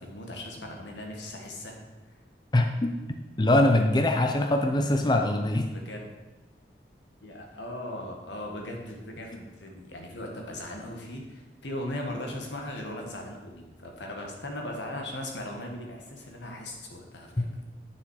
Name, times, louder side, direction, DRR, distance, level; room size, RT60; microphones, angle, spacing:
voice 1, 0.0-2.2 5.7-6.1 7.2-17.6, left 1 dB, 90° left, 1 dB, 1.8 m, -38 dB
voice 2, 2.5-2.9 3.4-5.7 17.4-17.5, left 1 dB, 25° left, 4 dB, 0.5 m, -23 dB
9.4 x 6.4 x 4.8 m, 1.2 s
head